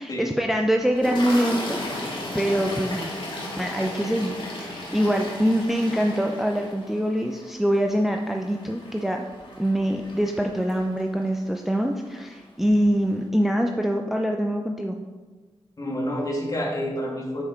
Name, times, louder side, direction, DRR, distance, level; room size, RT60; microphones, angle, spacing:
voice 1, 0.0-3.2 3.6-9.2 9.6-15.0, equal, 5° right, 3 dB, 0.4 m, -24 dB
Toilet flush, 0.9-11.2 12.2-12.4 12.6-12.8, left 1 dB, 50° left, 1.9 m, -35 dB
voice 2, 15.8-17.4, equal, 35° left, -2 dB, 1.7 m, -28 dB
6.4 x 6.0 x 4.4 m, 1.3 s
wide cardioid pair, 115°, 11 cm